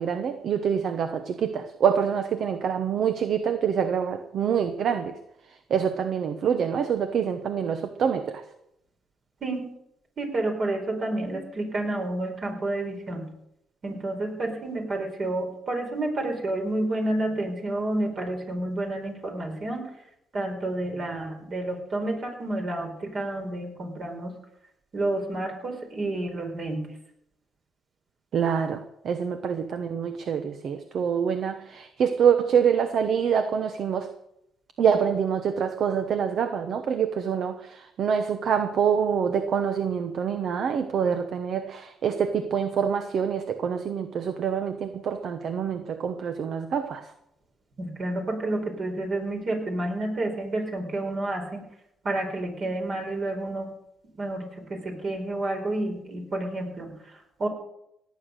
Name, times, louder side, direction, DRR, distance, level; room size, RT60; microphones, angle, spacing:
voice 1, 0.0-5.1 5.7-8.4 28.3-34.1 34.8-47.1, right 7 dB, 65° right, 9 dB, 1.1 m, -26 dB
voice 2, 9.4-9.7 10.2-13.3 13.8-19.9 20.3-24.3 24.9-26.9 47.8-51.6 52.0-53.7 54.1-57.5, right 2 dB, 50° right, 3 dB, 4.8 m, -30 dB
17.5 x 9.5 x 6.6 m, 0.79 s
cardioid pair, 90°, 0 cm